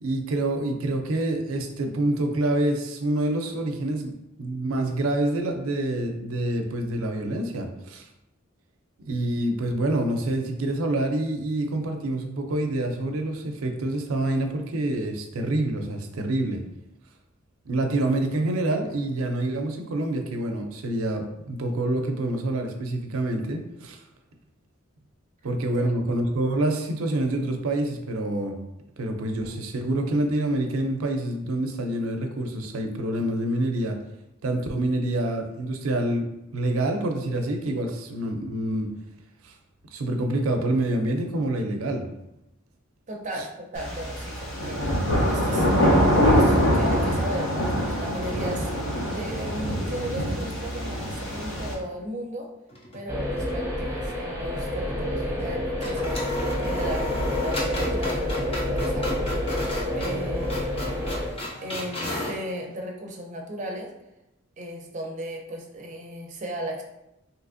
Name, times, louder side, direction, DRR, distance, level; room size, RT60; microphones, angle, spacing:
voice 1, 0.0-8.1 9.1-16.6 17.7-24.0 25.4-28.6 29.0-34.0 34.4-38.9 39.4-39.5 39.9-42.1 43.3-43.5, right 1 dB, 90° right, 4 dB, 0.5 m, -27 dB
voice 2, 43.1-44.8 45.3-45.7 46.3-52.5 52.9-56.2 56.6-57.1 57.4-59.1 59.9-60.6 61.6-63.9 64.6-66.8, right 1 dB, 35° right, 0 dB, 0.5 m, -36 dB
sound 1, 43.7-51.7, equal, 65° left, 0.8 m, -24 dB
sound 2, 52.7-53.5 53.8-53.9 55.4-55.5 55.8-62.4, left 1 dB, 30° left, 0.7 m, -34 dB
sound 3, 53.1-61.3, left 1 dB, 10° right, 0.9 m, -28 dB
3.3 x 2.9 x 2.5 m, 0.87 s
head